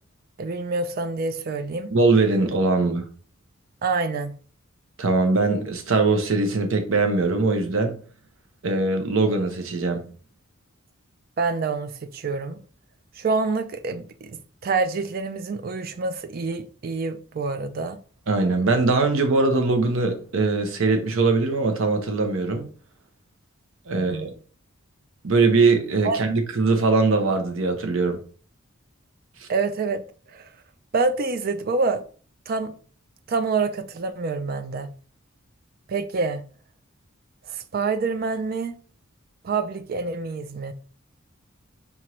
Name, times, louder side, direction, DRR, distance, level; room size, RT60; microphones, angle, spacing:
voice 1, 0.4-1.9 3.8-4.3 11.4-12.6 13.2-18.0 23.9-24.3 26.0-26.3 29.5-30.0 30.3-30.5 30.9-32.0 32.5-32.7 33.3-34.9 35.9-36.4 37.5-38.8 39.4-40.7, right 4 dB, 45° right, 0.3 m, -27 dB
voice 2, 1.9-3.1 5.0-7.9 8.6-10.0 18.3-22.6 23.9-24.3 25.2-28.2 29.4-29.5, right 3 dB, 70° right, 0.7 m, -21 dB
4.4 x 2.5 x 3.0 m
head